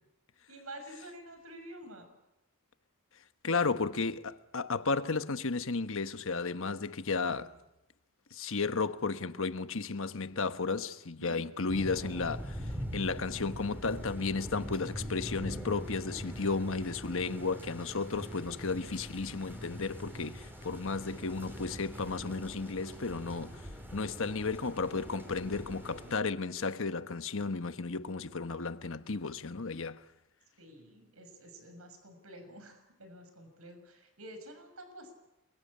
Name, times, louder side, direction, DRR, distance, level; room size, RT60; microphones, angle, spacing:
voice 1, 0.5-2.1 11.2-11.4 11.9-12.2 30.6-35.1, right 1 dB, 75° right, 6.6 m, -49 dB
voice 2, 3.4-7.6 8.3-12.6 12.9-23.6 23.9-30.0, left 4 dB, 65° left, 1.2 m, -33 dB
sound 1, 11.7-26.1, equal, 10° right, 5.0 m, -43 dB
29.0 x 23.5 x 8.7 m
head